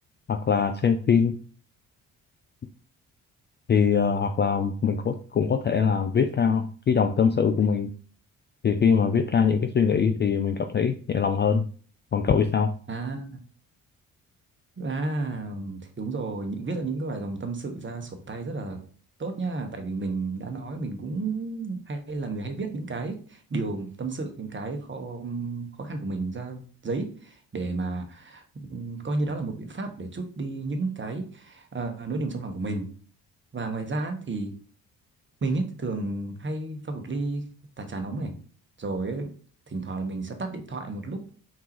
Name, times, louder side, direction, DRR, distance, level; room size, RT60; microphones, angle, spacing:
voice 1, 0.3-1.4 3.7-7.9 8.6-11.7 12.1-12.7, left 6 dB, 25° left, 8 dB, 0.4 m, -22 dB
voice 2, 12.9-13.4 14.8-18.9 19.2-32.9 33.5-34.5 35.4-37.5 37.8-38.3 38.8-39.3 39.7-41.2, right 3 dB, 30° right, 5 dB, 1.1 m, -32 dB
4.7 x 3.6 x 3.0 m, 0.42 s
hypercardioid pair, 50°, 41 cm